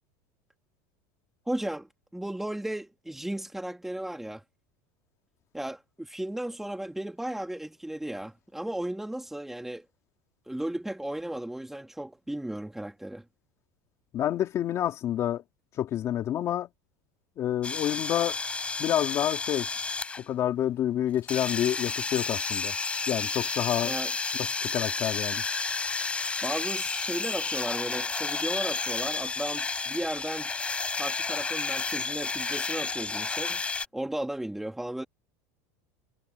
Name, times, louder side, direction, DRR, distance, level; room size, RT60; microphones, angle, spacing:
voice 1, 1.5-4.4 5.5-9.8 10.5-13.2 23.8-24.1 26.4-30.5 31.0-33.6 33.9-35.0, right 1 dB, 5° right, 2.7 m, -35 dB
voice 2, 14.1-15.4 15.8-16.7 17.4-18.4 18.8-19.7 20.2-22.7 23.1-23.9 24.6-25.4, left 11 dB, 35° left, 3.1 m, -28 dB
sound 1, 17.6-20.2 21.3-33.9, left 4 dB, 15° left, 5.5 m, -31 dB
supercardioid pair, 155°, 9 cm